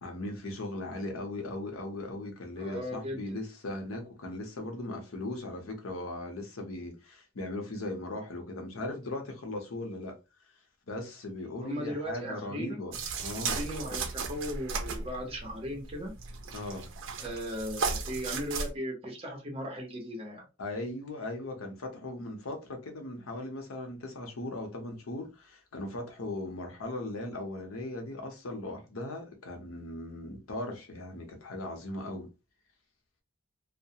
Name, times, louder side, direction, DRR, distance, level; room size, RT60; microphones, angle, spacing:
voice 1, 0.0-10.2 10.9-13.6 16.5-16.9 20.6-32.3, left 2 dB, 85° left, 0.8 m, -38 dB
voice 2, 2.6-3.4 11.6-12.8 13.3-16.1 17.2-20.4, equal, 30° right, 0.9 m, -37 dB
sound 1, 12.9-18.7, right 4 dB, 65° right, 0.5 m, -36 dB
2.3 x 2.1 x 2.8 m
head